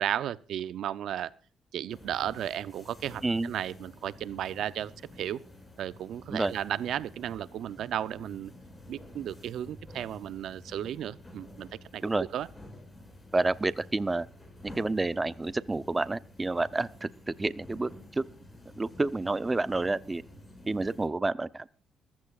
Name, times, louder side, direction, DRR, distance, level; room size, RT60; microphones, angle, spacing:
voice 1, 0.0-1.3 1.7-5.4 5.8-8.5 8.9-12.5, right 10 dB, 75° right, 17 dB, 0.5 m, -34 dB
sound 1, 1.9-21.1, left 1 dB, 15° left, 6.7 m, -50 dB
voice 2, 13.3-14.3 14.6-17.1 17.4-17.9 18.2-18.3 18.8-20.2 20.7-21.7, right 2 dB, 20° right, 16 dB, 0.7 m, -29 dB
21.5 x 15.0 x 2.4 m, 0.39 s
cardioid pair, 90°, 0 cm